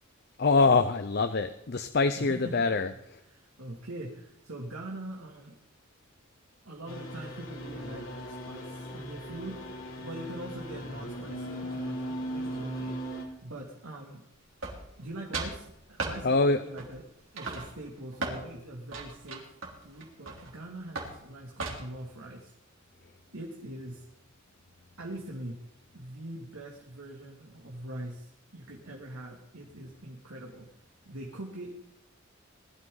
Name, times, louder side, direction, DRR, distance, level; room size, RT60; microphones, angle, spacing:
voice 1, 0.4-2.9 16.2-16.6, left 3 dB, 50° left, 10 dB, 0.6 m, -24 dB
voice 2, 2.1-5.5 6.6-14.2 15.0-17.0 17.3-19.6 19.8-22.5 23.3-24.0 25.0-25.6 25.9-30.7 31.1-31.7, right 1 dB, 90° right, -1 dB, 2.5 m, -43 dB
sound 1, 6.9-13.2, equal, 75° left, 3.1 m, -38 dB
sound 2, 14.6-15.1 15.3-15.6 16.0-16.2 16.8-17.1 17.4-18.4 18.9-20.5 21.0-21.2 21.6-22.0, right 3 dB, 70° right, 3.4 m, -36 dB
20.5 x 12.5 x 3.9 m, 0.82 s
head